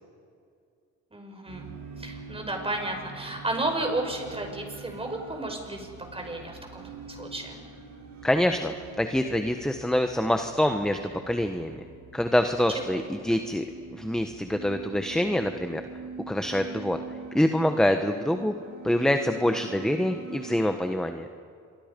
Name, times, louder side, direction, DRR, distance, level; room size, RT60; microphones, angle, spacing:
voice 1, 1.1-1.7 2.0-7.6 12.7-13.0, right 2 dB, 20° right, 3 dB, 5.6 m, -33 dB
sound 1, 1.5-20.7, right 4 dB, 65° right, 5.1 m, -44 dB
voice 2, 8.2-11.0 11.3-11.8 12.1-13.6 13.9-15.8 16.3-17.0 17.3-18.5 18.8-21.2, left 1 dB, ahead, 7 dB, 1.3 m, -25 dB
27.5 x 24.0 x 5.4 m, 2.3 s
cardioid pair, 90°, 30 cm